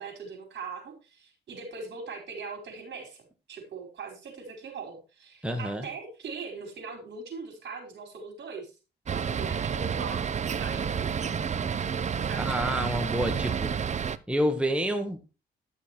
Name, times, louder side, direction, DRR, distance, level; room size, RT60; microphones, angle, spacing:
voice 1, 0.0-8.7 9.1-11.1 12.2-12.7, right 4 dB, 60° right, 4 dB, 4.8 m, -41 dB
voice 2, 5.4-5.9 12.4-13.7 14.3-15.2, equal, 5° right, 5 dB, 1.5 m, -28 dB
sound 1, 9.1-14.2, right 7 dB, 35° right, 0.7 m, -30 dB
11.5 x 6.4 x 4.5 m, 0.30 s
cardioid pair, 90°, 20 cm